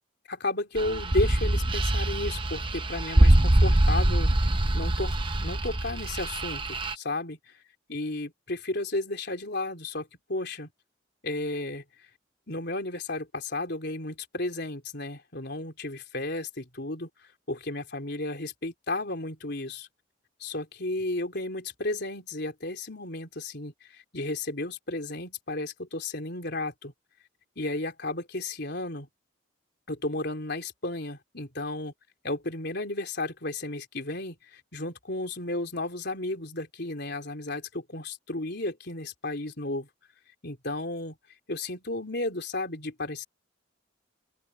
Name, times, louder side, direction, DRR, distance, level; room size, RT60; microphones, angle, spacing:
voice 1, 0.3-7.4 7.9-10.7 11.2-11.8 12.5-17.1 17.5-19.9 20.4-26.9 27.6-29.1 29.9-31.9 32.2-39.9 40.4-41.1 41.5-43.2, left 2 dB, 55° left, 3.9 m, -33 dB
sound 1, 0.8-6.9, right 1 dB, 25° right, 0.8 m, -23 dB
open air
head